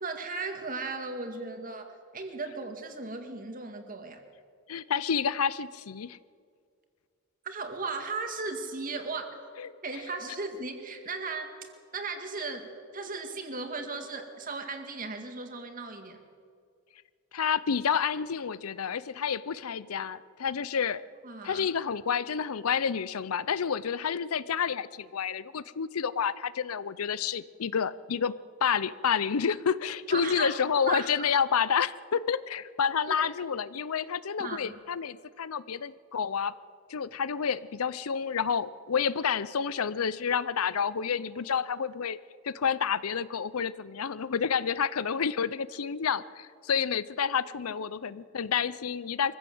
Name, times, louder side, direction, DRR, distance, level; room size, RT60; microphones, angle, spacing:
voice 1, 0.0-4.2 7.4-9.4 9.8-11.5 11.9-16.2 21.2-21.7 30.1-30.6 30.9-31.3 33.1-33.3 34.4-34.8, right 4 dB, 40° right, 5 dB, 2.1 m, -36 dB
voice 2, 4.7-6.2 9.6-9.7 17.3-21.0 21.4-28.3 28.6-36.5 36.9-42.2 42.4-49.4, left 7 dB, 90° left, 17 dB, 0.6 m, -29 dB
23.5 x 15.5 x 7.8 m, 2.2 s
head